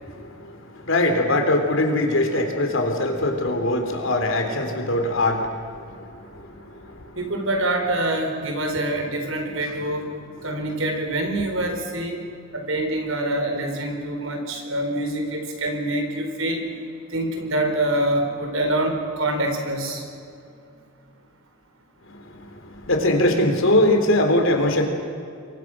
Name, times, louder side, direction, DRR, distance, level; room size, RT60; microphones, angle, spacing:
voice 1, 0.0-7.2 22.1-24.8, left 1 dB, 65° left, 4 dB, 3.7 m, -22 dB
voice 2, 7.2-10.1 10.4-12.2 12.5-16.6 17.1-20.0, right 1 dB, 75° right, 4 dB, 4.4 m, -25 dB
28.0 x 23.0 x 6.2 m, 2.5 s
head